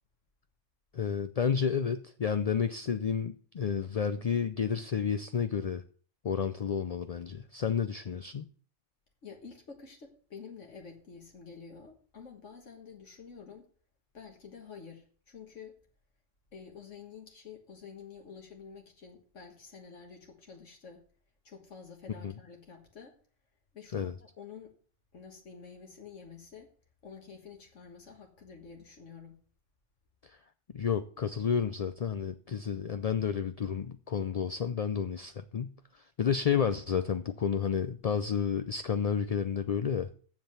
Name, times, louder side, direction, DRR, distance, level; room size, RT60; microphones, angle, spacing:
voice 1, 0.9-5.8 6.2-8.5 22.2-22.3 23.9-24.1 30.2-30.4 30.7-40.1, left 7 dB, 50° left, 0.4 m, -31 dB
voice 2, 9.2-13.7 14.1-15.8 16.5-21.0 21.4-23.2 23.7-24.7 25.1-26.7 27.0-29.4, left 6 dB, 70° left, 1.9 m, -49 dB
7.5 x 7.3 x 7.9 m
omnidirectional pair, 1.3 m